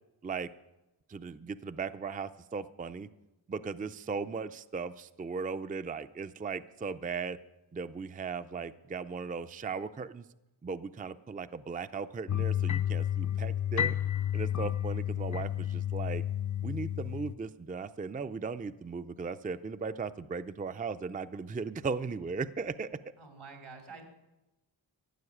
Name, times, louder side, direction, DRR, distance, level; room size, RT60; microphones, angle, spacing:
voice 1, 1.1-3.1 3.5-7.4 7.7-10.2 10.6-14.0 14.3-16.2 16.6-23.0, right 5 dB, 20° right, 13 dB, 0.4 m, -37 dB
sound 1, 12.3-17.3, left 10 dB, 40° left, 0.4 m, -31 dB
voice 2, 23.2-24.0, right 4 dB, 85° right, 3 dB, 3.0 m, -48 dB
14.5 x 7.2 x 9.8 m, 0.99 s
wide cardioid pair, 90°, 47 cm